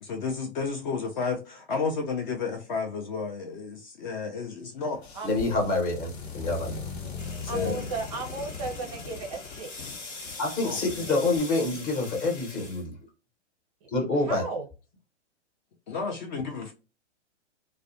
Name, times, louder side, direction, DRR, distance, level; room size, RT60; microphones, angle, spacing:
voice 1, 0.0-5.0 7.5-7.9 10.6-11.1 15.9-16.7, left 4 dB, 40° left, 0.5 m, -32 dB
sound 1, 4.9-11.4, left 5 dB, 65° left, 0.9 m, -40 dB
voice 2, 5.2-7.2 7.5-7.7 10.4-12.9 13.9-14.5, left 2 dB, 25° left, 0.9 m, -27 dB
sound 2, 7.2-12.9, left 3 dB, 80° left, 1.2 m, -43 dB
voice 3, 7.5-9.7 11.1-11.2 14.3-14.6, right 3 dB, 30° right, 0.4 m, -35 dB
2.3 x 2.1 x 2.6 m
hypercardioid pair, 125°, 35 cm